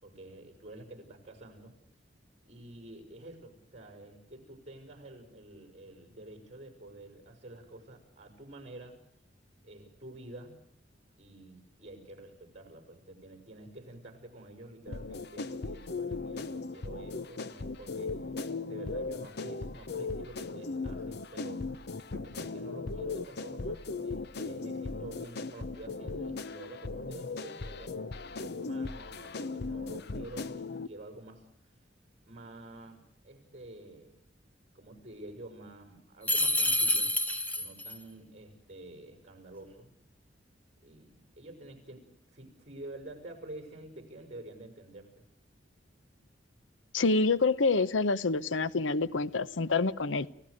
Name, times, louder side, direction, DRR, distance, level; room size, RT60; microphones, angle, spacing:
voice 1, 0.0-1.7 2.4-9.0 9.6-10.6 11.2-18.2 18.6-21.7 22.1-31.4 32.2-34.2 34.7-37.2 37.5-39.9 40.8-45.3, right 1 dB, 40° right, 7 dB, 6.1 m, -49 dB
sound 1, 14.9-30.9, left 3 dB, 60° left, 0.8 m, -38 dB
sound 2, 36.2-38.0, left 1 dB, 10° left, 1.4 m, -28 dB
voice 2, 46.9-50.3, left 3 dB, 90° left, 17 dB, 0.8 m, -27 dB
30.0 x 17.0 x 6.5 m, 0.69 s
head